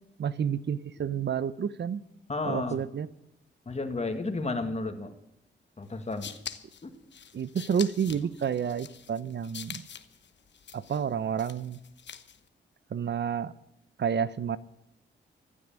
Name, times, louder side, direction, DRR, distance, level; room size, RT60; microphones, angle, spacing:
voice 1, 0.2-2.0 2.4-3.1 7.3-9.8 10.7-11.8 12.9-13.5 14.0-14.6, right 7 dB, 60° right, 17 dB, 0.8 m, -30 dB
voice 2, 2.3-2.8 3.7-5.1 5.8-6.3 6.8-6.9 8.1-8.3, left 3 dB, 35° left, 7 dB, 2.1 m, -32 dB
sound 1, 5.9-12.5, left 7 dB, 60° left, 1.1 m, -45 dB
15.0 x 11.5 x 7.3 m, 0.81 s
cardioid pair, 65°, 20 cm